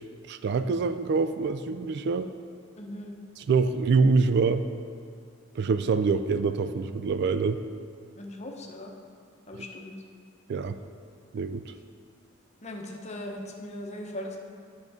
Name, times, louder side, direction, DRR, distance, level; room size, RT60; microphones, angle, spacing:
voice 1, 0.3-2.3 3.4-4.7 5.6-7.6 10.5-10.8 11.3-11.7, right 4 dB, 60° right, 11 dB, 0.3 m, -25 dB
voice 2, 2.8-3.1 8.2-8.9 9.5-9.9 12.6-14.4, left 1 dB, 35° left, 1 dB, 0.9 m, -39 dB
10.5 x 6.5 x 3.6 m, 2.2 s
head